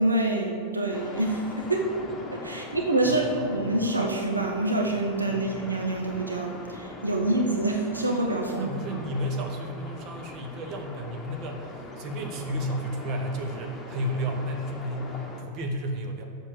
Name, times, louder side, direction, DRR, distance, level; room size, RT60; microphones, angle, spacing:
voice 1, 0.0-1.9 2.3-8.7, right 2 dB, 80° right, 1 dB, 1.1 m, -26 dB
sound 1, 0.9-15.4, left 2 dB, 15° left, 1.3 m, -41 dB
voice 2, 8.5-16.3, equal, 40° right, 3 dB, 1.3 m, -32 dB
7.4 x 6.5 x 6.8 m, 2.4 s
figure-of-eight pair, 90°, 0 cm